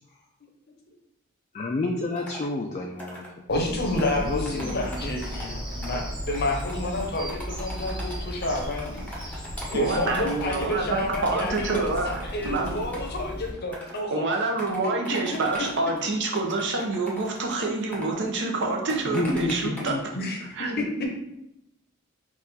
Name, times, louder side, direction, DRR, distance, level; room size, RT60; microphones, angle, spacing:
voice 1, 1.5-3.3 4.2-5.1 19.1-20.0, left 2 dB, 30° left, 1 dB, 0.3 m, -30 dB
sound 1, 2.1-2.5 3.0-3.3 4.0-6.0 6.3-6.7 7.0-13.2 13.6-14.0 14.3-18.1 18.9-19.9, equal, 5° left, 0.8 m, -40 dB
voice 2, 3.5-9.4 9.7-14.3 14.8-14.9 15.3-15.4 20.1-21.1, left 1 dB, 50° left, 2 dB, 0.7 m, -30 dB
Bird vocalization bird call bird song, 3.5-13.5, equal, 25° right, 0.8 m, -36 dB
voice 3, 9.7-12.1 12.4-12.8 14.1-19.9 20.5-21.1, right 3 dB, 55° right, 1 dB, 0.7 m, -27 dB
4.1 x 2.4 x 4.0 m, 0.83 s
head